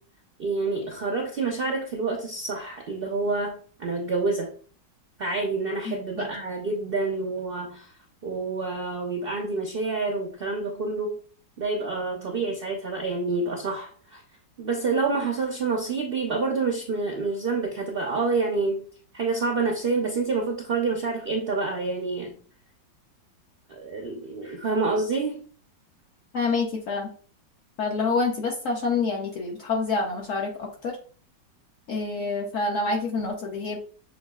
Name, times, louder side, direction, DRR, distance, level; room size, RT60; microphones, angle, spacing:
voice 1, 0.4-4.5 5.2-7.9 8.2-11.2 11.6-14.2 14.6-18.8 19.1-22.4 23.7-25.4, right 3 dB, 85° right, 1 dB, 0.5 m, -28 dB
voice 2, 5.9-6.3 26.3-27.1 27.8-31.0 31.9-33.8, left 3 dB, 60° left, 1 dB, 0.8 m, -27 dB
6.3 x 2.9 x 2.3 m, 0.43 s
omnidirectional pair, 2.0 m